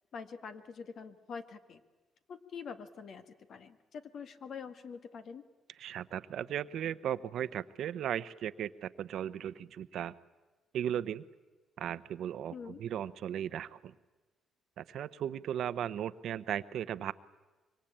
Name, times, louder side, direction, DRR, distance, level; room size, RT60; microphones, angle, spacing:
voice 1, 0.1-1.8 2.3-5.4 12.5-12.8, left 6 dB, 60° left, 9 dB, 1.8 m, -45 dB
voice 2, 5.8-10.1 10.7-11.2 11.8-13.9 14.8-17.1, right 10 dB, 70° right, 14 dB, 0.8 m, -36 dB
25.0 x 24.0 x 8.8 m, 1.2 s
cardioid pair, 90°, 0 cm